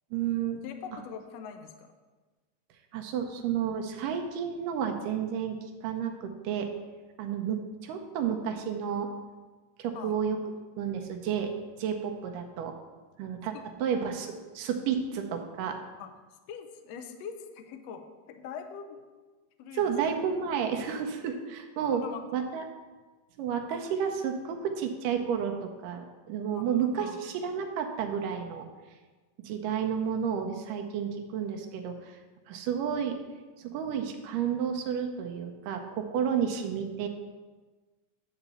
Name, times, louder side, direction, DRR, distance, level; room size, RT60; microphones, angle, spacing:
voice 1, 0.1-0.6 2.9-6.7 7.2-9.1 9.8-10.4 10.8-11.5 11.8-12.7 13.2-13.5 13.8-14.3 14.5-15.8 19.7-22.0 22.3-22.6 23.4-25.6 25.8-28.7 29.4-32.2 32.5-33.2 33.6-37.1, right 7 dB, 85° right, 4 dB, 2.4 m, -31 dB
voice 2, 0.6-1.9 9.9-10.2 13.5-13.6 16.0-16.1 16.5-19.0 19.6-19.9 21.9-22.2 26.5-27.2, left 7 dB, 80° left, 7 dB, 1.5 m, -43 dB
10.0 x 4.1 x 6.9 m, 1.3 s
omnidirectional pair, 3.8 m